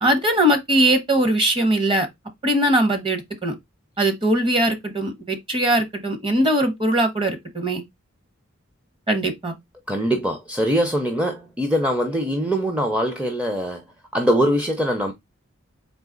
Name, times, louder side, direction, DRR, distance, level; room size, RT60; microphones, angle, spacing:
voice 1, 0.0-2.1 2.4-3.5 4.0-7.8 9.1-9.6, right 1 dB, 25° right, 0.9 m, -20 dB
voice 2, 9.9-13.8 14.1-15.1, equal, 5° right, 0.5 m, -22 dB
3.9 x 2.8 x 3.7 m
head